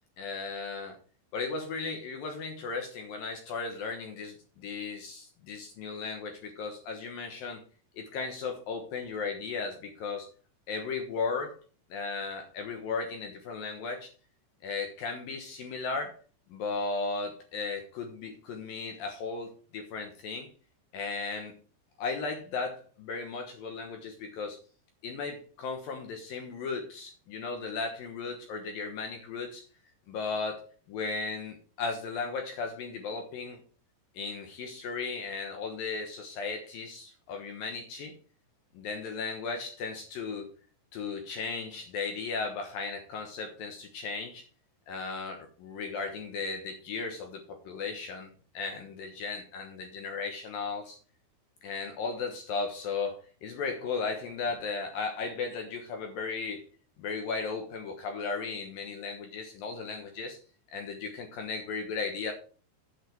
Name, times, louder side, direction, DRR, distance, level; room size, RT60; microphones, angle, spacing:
voice 1, 0.2-1.0 1.3-7.6 8.0-10.3 10.7-11.6 11.9-14.1 14.6-16.1 16.5-20.5 20.9-21.5 22.0-24.6 25.0-29.6 30.1-30.6 30.9-33.6 34.1-38.1 38.7-40.5 40.9-44.4 44.9-48.3 48.5-51.0 51.6-56.6 57.0-60.4 60.7-62.3, left 4 dB, 65° left, 3 dB, 2.4 m, -36 dB
8.4 x 7.6 x 4.6 m, 0.39 s
omnidirectional pair, 5.4 m